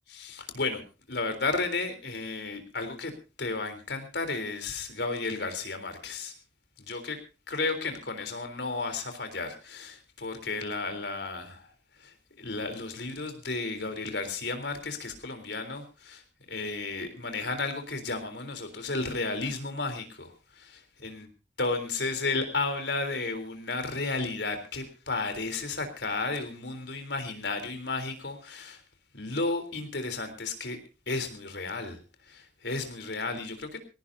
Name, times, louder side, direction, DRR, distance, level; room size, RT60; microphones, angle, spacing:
voice 1, 0.1-0.8 1.1-3.1 3.4-6.3 6.8-7.2 7.5-11.7 12.0-16.2 16.5-21.3 21.6-28.8 29.1-30.8 31.1-32.0 32.3-33.8, left 3 dB, 75° left, 7 dB, 3.7 m, -33 dB
21.5 x 17.5 x 2.7 m, 0.31 s
head